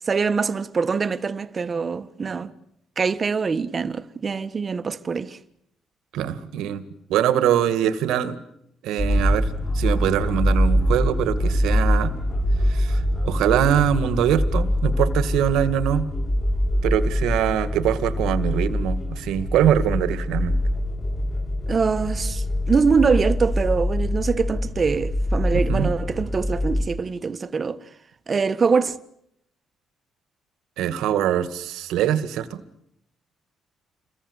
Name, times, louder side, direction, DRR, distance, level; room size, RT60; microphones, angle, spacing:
voice 1, 0.1-2.5 3.0-5.4 21.7-27.8 28.3-29.0, right 5 dB, 40° right, 1.6 m, -23 dB
voice 2, 6.1-6.8 7.1-8.4 8.8-9.5 9.7-12.1 12.7-16.1 16.8-20.5 25.5-25.9 30.8-32.6, right 10 dB, 90° right, 2.0 m, -23 dB
sound 1, 9.0-26.8, left 1 dB, 30° left, 6.8 m, -24 dB
28.5 x 23.0 x 8.2 m
cardioid pair, 90°, 0 cm